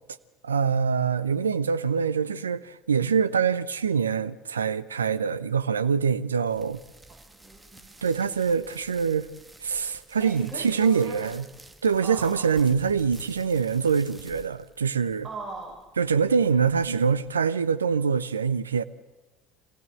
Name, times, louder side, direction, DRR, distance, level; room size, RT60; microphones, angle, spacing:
voice 1, 0.4-6.8 8.0-9.3 9.6-11.4 11.8-15.3 16.0-18.8, right 6 dB, 80° right, 0.6 m, -24 dB
sound 1, 6.4-17.4, right 2 dB, 10° right, 1.9 m, -51 dB
voice 2, 7.1-7.9 10.2-11.3 12.0-12.5 15.2-15.8, right 4 dB, 30° right, 5.3 m, -40 dB
26.0 x 16.5 x 7.8 m
figure-of-eight pair, 65°, 0 cm